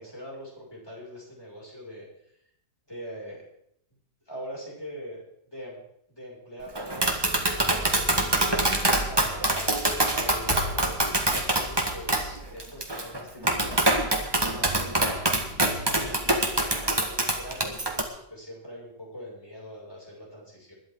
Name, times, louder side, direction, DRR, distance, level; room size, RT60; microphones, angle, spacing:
voice 1, 0.0-2.0 2.9-3.4 4.3-5.8 6.1-7.3 7.6-8.7 9.1-14.0 14.4-20.7, equal, 15° left, -4 dB, 5.8 m, -42 dB
Tap, 6.8-18.0, right 1 dB, 15° right, 1.4 m, -25 dB
20.5 x 11.5 x 3.8 m, 0.73 s
omnidirectional pair, 1.7 m